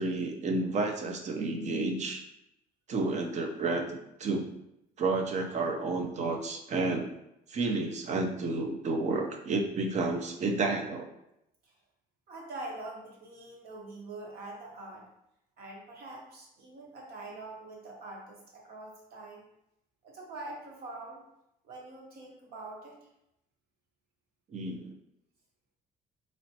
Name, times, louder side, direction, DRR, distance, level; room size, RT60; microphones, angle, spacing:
voice 1, 0.0-2.2 2.9-3.8 4.2-4.5 5.0-7.1 7.5-11.1 24.5-24.9, right 3 dB, 45° right, 4 dB, 0.6 m, -30 dB
voice 2, 12.3-15.1 15.6-19.4 20.0-21.2 21.6-23.0, right 2 dB, 65° right, -1 dB, 1.3 m, -44 dB
4.1 x 3.1 x 2.8 m, 0.82 s
cardioid pair, 110°, 17 cm